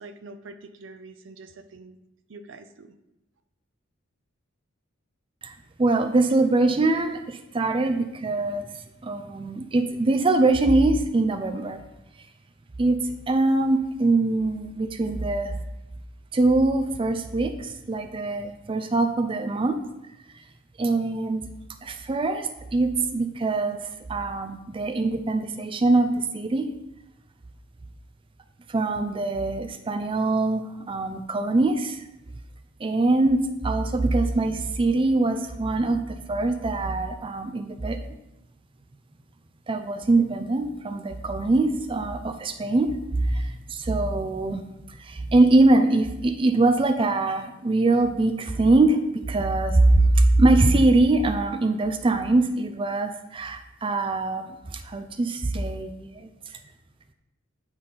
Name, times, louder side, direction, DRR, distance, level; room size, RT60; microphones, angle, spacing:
voice 1, 0.0-2.0 2.3-2.9, right 3 dB, 70° right, 10 dB, 0.6 m, -44 dB
voice 2, 5.8-8.7 9.0-11.8 12.8-15.5 16.3-19.8 20.8-21.5 21.8-26.7 28.7-32.0 32.8-38.0 39.7-44.6 44.9-49.0 49.3-56.3, right 2 dB, 25° right, 8 dB, 0.4 m, -23 dB
8.9 x 4.0 x 5.5 m, 0.91 s
head